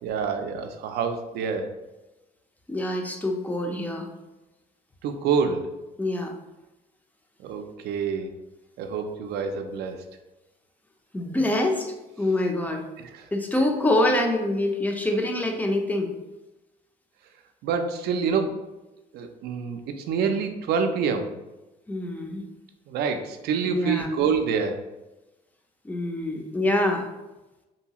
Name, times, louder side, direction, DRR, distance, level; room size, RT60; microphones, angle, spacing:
voice 1, 0.0-1.7 5.0-5.7 7.4-8.3 8.8-10.0 13.0-13.3 17.6-18.7 19.1-21.3 22.9-24.9, right 6 dB, 70° right, 6 dB, 0.4 m, -27 dB
voice 2, 2.7-4.1 6.0-6.3 11.1-12.8 13.3-16.1 21.9-22.4 23.7-24.1 25.8-27.1, left 1 dB, 10° left, 3 dB, 0.4 m, -25 dB
2.7 x 2.3 x 2.8 m, 1.0 s
cardioid pair, 110°, 17 cm